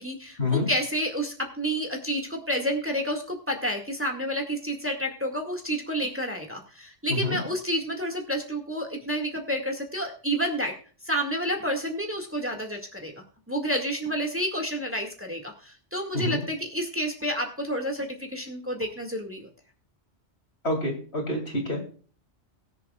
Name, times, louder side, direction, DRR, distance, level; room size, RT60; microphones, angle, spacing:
voice 1, 0.0-10.7 11.1-13.1 13.5-19.5, equal, 10° right, 3 dB, 1.9 m, -30 dB
voice 2, 20.6-21.9, left 2 dB, 65° left, 1 dB, 3.3 m, -27 dB
22.0 x 7.4 x 2.3 m, 0.41 s
omnidirectional pair, 1.2 m